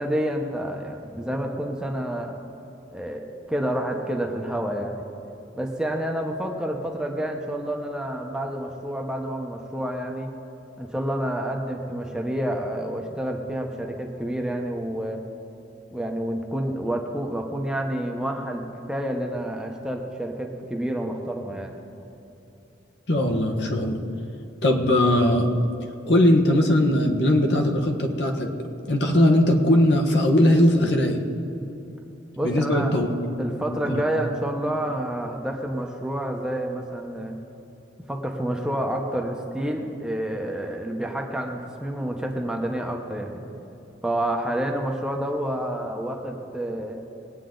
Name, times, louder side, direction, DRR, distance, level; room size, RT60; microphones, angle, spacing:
voice 1, 0.0-2.4 2.9-5.0 5.6-10.3 10.8-15.2 15.9-21.8 32.4-32.9 33.4-37.4 38.1-43.4 44.0-47.0, right 1 dB, 5° right, 1 dB, 0.8 m, -29 dB
voice 2, 23.1-24.0 24.6-25.5 26.1-28.5 28.9-31.2 32.4-33.1 33.6-34.0, left 1 dB, 65° left, 2 dB, 1.3 m, -20 dB
21.0 x 9.1 x 3.9 m, 2.9 s
head